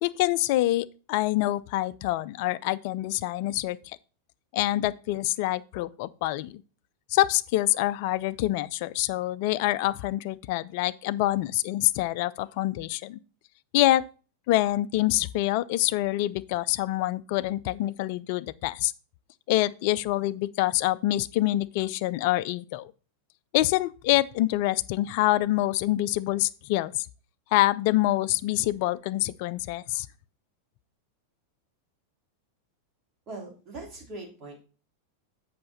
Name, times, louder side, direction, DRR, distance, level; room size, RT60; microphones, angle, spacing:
voice 1, 0.0-4.0 4.5-6.6 7.1-13.2 13.7-14.0 14.5-18.9 19.5-22.9 23.5-27.1 27.5-30.1, left 16 dB, 45° left, 0.3 m, -26 dB
voice 2, 33.3-34.6, right 2 dB, 30° right, 3.2 m, -41 dB
7.6 x 5.7 x 4.1 m
figure-of-eight pair, 90°, 0 cm